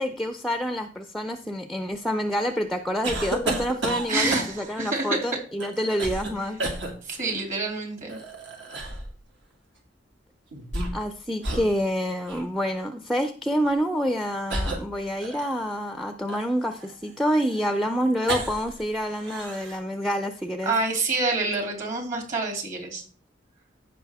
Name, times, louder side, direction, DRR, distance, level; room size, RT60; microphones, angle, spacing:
voice 1, 0.0-6.6 10.9-20.7, equal, ahead, 8 dB, 0.5 m, -27 dB
sound 1, 3.0-4.8 5.6-6.3 6.6-6.9 8.1-9.1 10.5-11.1 11.4-11.7 12.3-12.4 13.5-13.7 14.5-15.7 16.3-18.8 19.1-19.8, right 2 dB, 70° right, 2.4 m, -31 dB
voice 2, 4.1-5.2 7.0-8.2 20.6-23.0, right 3 dB, 45° right, 2 dB, 2.8 m, -27 dB
15.0 x 5.5 x 3.5 m, 0.42 s
head